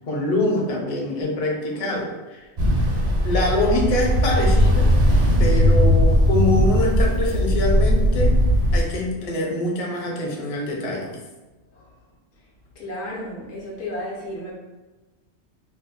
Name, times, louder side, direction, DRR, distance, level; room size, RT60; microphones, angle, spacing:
voice 1, 0.1-2.5 3.2-4.9 5.4-8.3 8.7-11.1, left 1 dB, 45° left, 0 dB, 0.5 m, -24 dB
Ocean, 2.6-8.8, equal, 50° right, 0.6 m, -18 dB
voice 2, 12.8-14.5, left 1 dB, 75° left, -3 dB, 1.0 m, -33 dB
2.6 x 2.1 x 3.9 m, 1.2 s
omnidirectional pair, 1.2 m